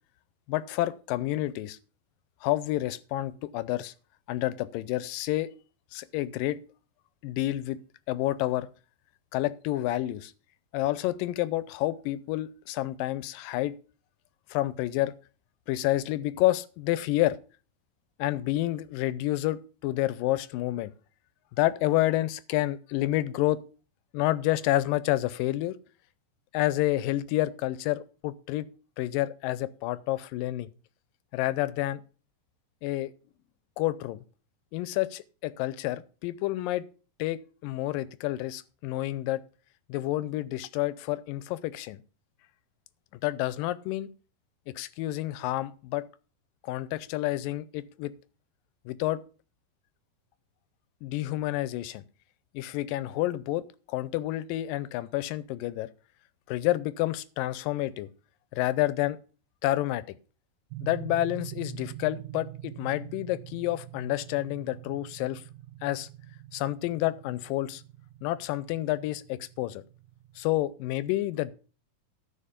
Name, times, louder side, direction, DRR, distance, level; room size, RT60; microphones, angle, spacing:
voice 1, 0.5-1.8 2.4-3.9 4.3-5.5 5.9-6.6 7.2-7.8 8.1-8.7 9.3-10.3 10.7-13.8 14.5-15.1 15.7-17.4 18.2-20.9 21.6-23.6 24.1-25.8 26.5-28.7 29.0-30.7 31.3-32.0 32.8-33.1 33.8-34.2 34.7-36.8 37.2-39.4 39.9-42.0 43.2-44.1 44.7-46.1 46.6-48.1 48.9-49.2 51.0-52.0 52.5-53.6 53.9-55.9 56.5-58.1 58.5-59.2 59.6-60.0 60.8-65.4 65.8-66.1 66.5-67.8 68.2-69.8 70.4-71.5, left 16 dB, 85° left, 2.3 m, -29 dB
sound 1, 60.7-70.4, right 14 dB, 85° right, 2.4 m, -45 dB
13.0 x 5.3 x 5.1 m
omnidirectional pair, 3.9 m